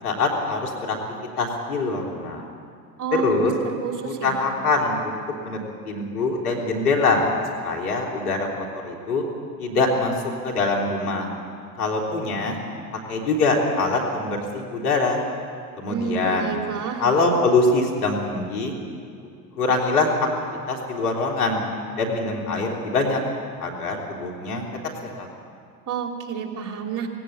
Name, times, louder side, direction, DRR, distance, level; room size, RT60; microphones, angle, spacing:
voice 1, 0.0-1.0 1.4-2.4 3.1-3.5 4.0-5.6 5.9-7.2 7.6-9.2 9.6-10.1 10.4-11.3 11.8-12.6 13.1-15.2 15.7-16.6 17.0-18.7 19.6-20.1 20.7-21.6 22.0-23.2 23.6-24.7 25.0-25.3, left 3 dB, 80° left, 0 dB, 3.5 m, -23 dB
voice 2, 3.0-4.4 15.9-17.0 25.9-27.1, right 6 dB, 40° right, 2 dB, 3.2 m, -29 dB
18.5 x 17.0 x 8.5 m, 2.2 s
hypercardioid pair, 80°, 45 cm